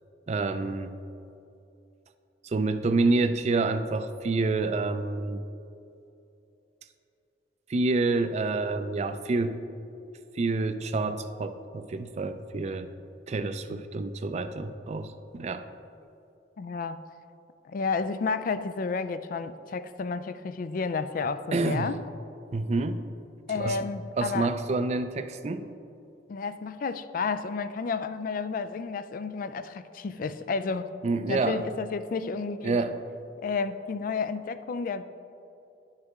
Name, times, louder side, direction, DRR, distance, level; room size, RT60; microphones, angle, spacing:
voice 1, 0.3-1.0 2.4-5.4 7.7-9.6 10.4-12.9 13.3-15.7 21.5-21.9 22.5-23.0 23.5-23.8 24.2-25.7 31.0-31.7 32.6-33.0, right 3 dB, 40° right, 10 dB, 0.4 m, -28 dB
voice 2, 16.6-17.0 17.6-22.0 23.5-24.5 26.3-30.9 31.3-32.8 33.4-35.0, left 4 dB, 50° left, 12 dB, 0.3 m, -31 dB
10.5 x 6.5 x 3.6 m, 2.7 s
head